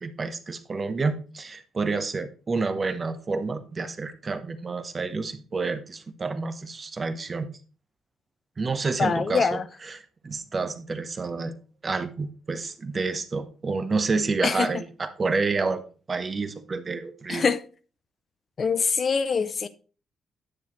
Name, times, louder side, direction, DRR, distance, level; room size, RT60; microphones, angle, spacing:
voice 1, 0.0-7.6 8.6-11.5 11.8-15.8 16.1-17.5, right 4 dB, 35° right, 0.9 m, -29 dB
voice 2, 9.0-9.7 14.4-14.7 17.3-17.6 18.6-19.7, left 5 dB, 45° left, 0.5 m, -24 dB
9.8 x 6.9 x 3.1 m
cardioid pair, 90°, 0 cm